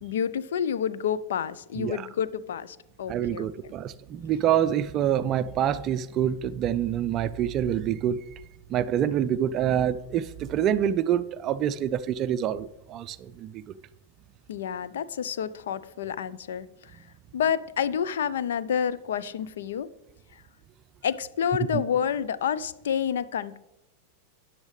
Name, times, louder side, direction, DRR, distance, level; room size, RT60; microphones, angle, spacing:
voice 1, 0.0-3.7 14.5-16.7 17.3-19.9 21.0-23.6, left 8 dB, 60° left, 0.5 m, -29 dB
voice 2, 1.8-2.1 3.1-8.2 8.7-13.6 21.7-21.8, right 10 dB, 35° right, 0.4 m, -26 dB
13.5 x 9.9 x 3.2 m
figure-of-eight pair, 90°, 0 cm